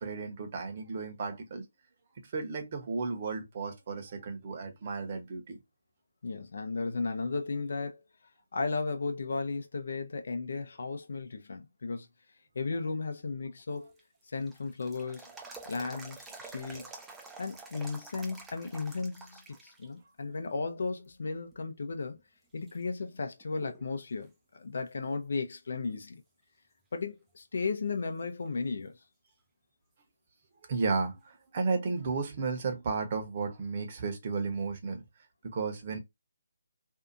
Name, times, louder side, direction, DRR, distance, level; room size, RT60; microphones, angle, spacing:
voice 1, 0.0-1.6 2.2-5.6 30.7-35.0 35.4-36.0, right 4 dB, 40° right, 0.9 m, -33 dB
voice 2, 6.2-8.0 8.5-12.1 12.5-13.9 14.3-15.3 15.7-16.9 17.4-22.2 22.5-26.1 26.9-29.0, left 4 dB, 60° left, 0.6 m, -35 dB
sound 1, 13.8-19.9 20.2-20.3 21.1-21.6 22.1-22.2 22.7-23.9 24.2-24.3 27.7-27.8 30.7-30.8, right 3 dB, 10° right, 0.5 m, -49 dB
2.7 x 2.4 x 2.4 m
figure-of-eight pair, 150°, 0 cm